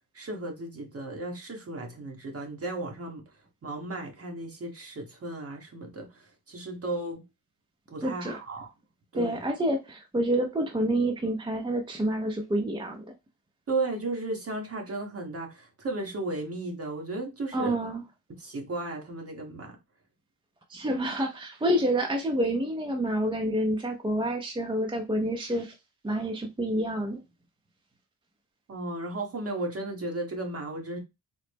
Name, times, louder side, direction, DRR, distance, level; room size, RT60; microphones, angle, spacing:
voice 1, 0.1-3.2 3.6-7.2 7.9-8.7 9.1-9.4 13.7-17.9 18.3-19.8 28.7-31.0, right 2 dB, 35° right, 1.3 m, -35 dB
voice 2, 8.0-8.4 9.1-13.1 17.5-18.0 20.7-25.7 26.0-27.2, right 1 dB, 15° right, 0.4 m, -28 dB
3.9 x 2.0 x 3.3 m
cardioid pair, 120°, 39 cm